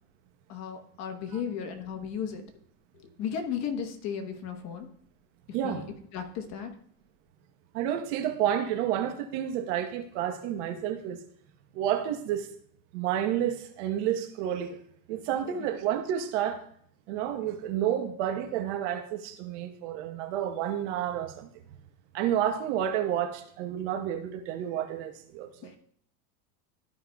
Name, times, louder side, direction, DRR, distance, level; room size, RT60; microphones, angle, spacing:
voice 1, 0.5-2.4 2.9-4.9 5.5-5.8 6.1-6.7 15.6-15.7 25.6-25.8, left 7 dB, 40° left, 6 dB, 1.1 m, -35 dB
voice 2, 7.7-11.2 11.7-12.5 12.9-14.8 15.1-16.6 17.1-21.5 22.1-25.7, right 10 dB, 55° right, 6 dB, 1.1 m, -30 dB
13.5 x 5.5 x 2.3 m, 0.64 s
supercardioid pair, 145°, 42 cm